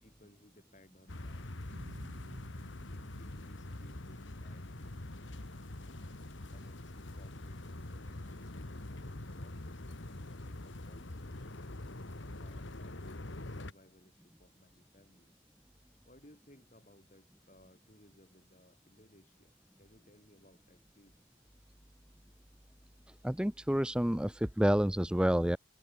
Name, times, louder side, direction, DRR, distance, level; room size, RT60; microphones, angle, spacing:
voice 1, 0.0-2.3 2.9-5.0 6.4-10.0 10.3-11.7 12.3-15.4 16.0-21.2, left 1 dB, 35° left, 6.7 m, -62 dB
sound 1, 1.1-13.7, left 1 dB, 60° left, 1.7 m, -44 dB
sound 2, 1.7-8.1, right 1 dB, 65° right, 3.5 m, -60 dB
voice 2, 23.2-25.6, equal, 5° right, 0.5 m, -29 dB
head